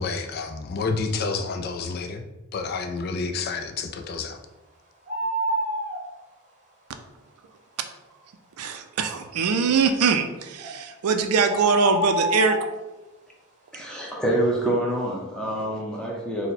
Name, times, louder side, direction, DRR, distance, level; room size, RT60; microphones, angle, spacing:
voice 1, 0.0-2.2 2.5-4.4, left 4 dB, 45° left, 5 dB, 0.3 m, -29 dB
sound 1, 5.1-6.0 10.6-10.7 11.4-12.7, equal, 35° right, 0.8 m, -27 dB
voice 2, 8.6-12.7 13.8-14.0, right 5 dB, 90° right, 7 dB, 0.4 m, -22 dB
voice 3, 13.7-16.5, right 1 dB, 5° left, -2 dB, 0.7 m, -26 dB
4.1 x 2.2 x 4.1 m, 1.1 s
head